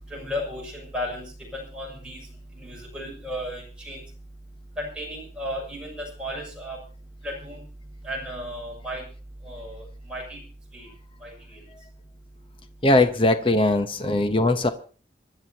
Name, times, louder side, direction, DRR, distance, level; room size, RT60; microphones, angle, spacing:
voice 1, 0.1-1.3 1.5-2.2 2.6-4.0 4.8-6.8 7.2-7.6 8.0-9.0 9.4-10.4 10.7-10.9 11.2-11.3, equal, 5° right, 7.2 m, -34 dB
voice 2, 12.8-14.7, left 2 dB, 30° left, 1.0 m, -20 dB
26.0 x 12.0 x 2.9 m
head